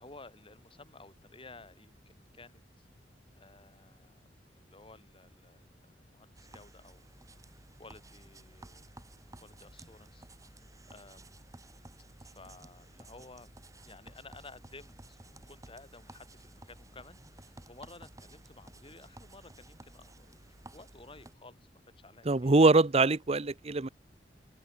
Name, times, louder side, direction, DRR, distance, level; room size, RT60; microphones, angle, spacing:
voice 1, 0.0-2.9 3.4-7.0 7.4-7.5 7.8-8.9 9.4-11.4 12.2-13.5 13.8-21.7 22.0-22.6, left 3 dB, 30° left, 6.9 m, -54 dB
sound 1, 6.3-21.3, right 2 dB, 20° right, 2.6 m, -54 dB
voice 2, 22.3-23.9, right 3 dB, 35° right, 0.8 m, -23 dB
head